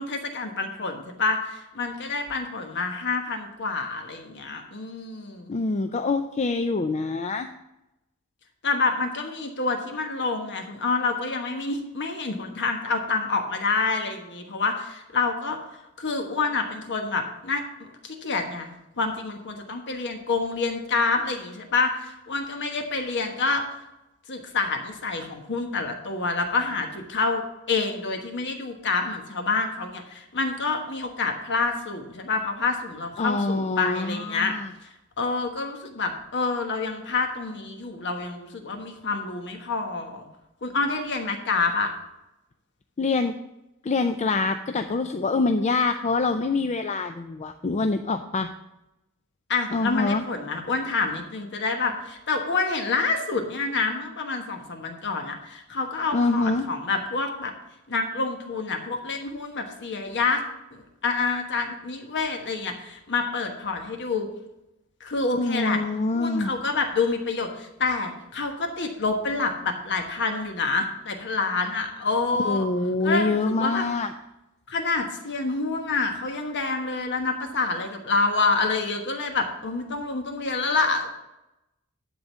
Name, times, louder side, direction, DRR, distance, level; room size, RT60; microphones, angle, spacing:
voice 1, 0.0-5.5 8.6-15.6 16.0-23.6 24.3-34.5 34.8-40.2 40.6-41.9 49.5-57.5 57.9-60.4 60.7-64.3 65.0-65.8 66.1-72.7 73.0-73.9 74.7-81.1, left 4 dB, 55° left, 4 dB, 1.3 m, -27 dB
voice 2, 5.5-7.5 33.2-34.7 43.0-43.3 43.8-48.5 49.7-50.2 56.1-56.7 65.3-66.5 72.4-74.1, left 3 dB, 30° left, 7 dB, 0.4 m, -25 dB
11.5 x 3.8 x 7.3 m, 0.91 s
head